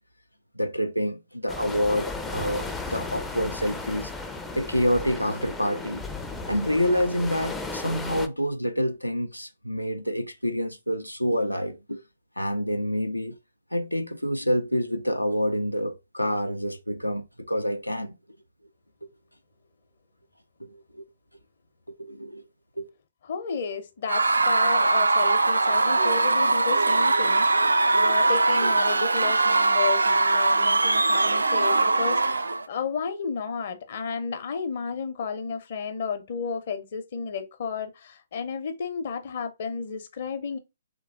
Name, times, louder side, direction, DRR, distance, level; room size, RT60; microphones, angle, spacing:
voice 1, 0.6-4.1 4.5-6.0 6.5-12.0 12.4-13.4 13.7-18.2 19.0-19.1 20.6-21.0 21.9-22.5 22.8-22.9, equal, 90° left, 0.5 m, -27 dB
sound 1, 1.5-8.3, left 3 dB, 5° left, 0.4 m, -35 dB
voice 2, 23.3-40.6, left 6 dB, 45° left, 0.7 m, -32 dB
Screaming / Cheering / Crowd, 24.1-32.6, right 3 dB, 75° right, 0.3 m, -21 dB
3.3 x 3.0 x 3.7 m
figure-of-eight pair, 125°, 0 cm